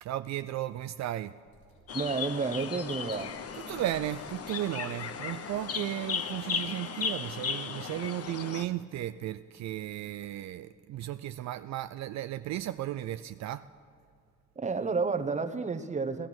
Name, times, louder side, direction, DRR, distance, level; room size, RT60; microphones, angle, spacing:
voice 1, 0.0-1.3 3.5-13.7, right 13 dB, 65° right, 0.4 m, -35 dB
Engine starting, 1.5-6.4, left 2 dB, 75° left, 4.2 m, -53 dB
sound 1, 1.9-8.6, left 6 dB, 50° left, 0.9 m, -36 dB
voice 2, 1.9-3.3 14.6-16.3, right 4 dB, 25° right, 1.0 m, -31 dB
17.0 x 13.0 x 6.0 m
cardioid pair, 90°, 30 cm